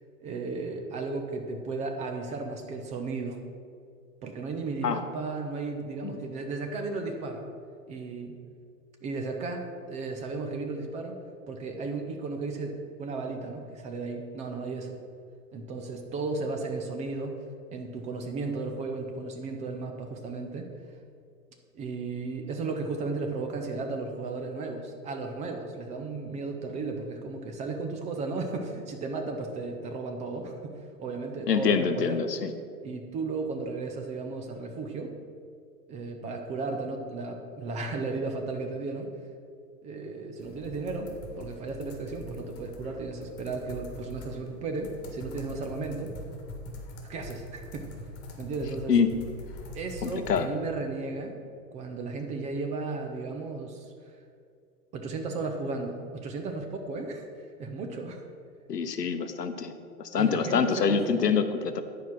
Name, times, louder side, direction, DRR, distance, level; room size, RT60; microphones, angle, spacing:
voice 1, 0.2-3.4 4.2-7.5 7.9-8.4 9.0-15.0 15.5-17.4 17.7-20.7 21.7-32.3 32.8-35.1 35.9-39.1 39.8-46.1 47.0-47.9 48.4-48.9 49.7-51.4 51.7-53.9 54.9-57.3 57.6-58.3 60.2-61.4, right 3 dB, 15° right, 4 dB, 0.5 m, -34 dB
voice 2, 31.5-32.5 48.9-49.2 50.0-50.5 58.7-59.7 60.0-61.8, left 6 dB, 85° left, 9 dB, 0.8 m, -25 dB
sound 1, 40.4-50.4, left 1 dB, 30° left, 1.7 m, -43 dB
10.5 x 4.8 x 6.0 m, 2.3 s
figure-of-eight pair, 105°, 47 cm